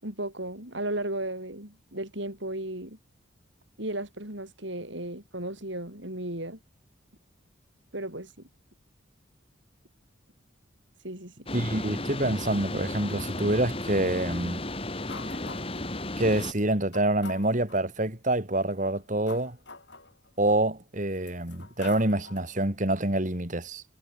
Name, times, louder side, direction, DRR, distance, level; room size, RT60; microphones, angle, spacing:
voice 1, 0.0-3.0 3.8-6.6 7.9-8.5 11.0-11.3, right 1 dB, 65° right, 7.4 m, -35 dB
sound 1, 11.5-16.5, left 2 dB, 30° left, 2.8 m, -34 dB
voice 2, 11.5-14.6 16.2-19.6 20.4-23.8, right 1 dB, 40° right, 2.5 m, -26 dB
sound 2, 15.1-15.9 16.6-16.7 16.9-17.9 18.7-20.6 21.1-22.6, left 3 dB, 60° left, 7.7 m, -45 dB
head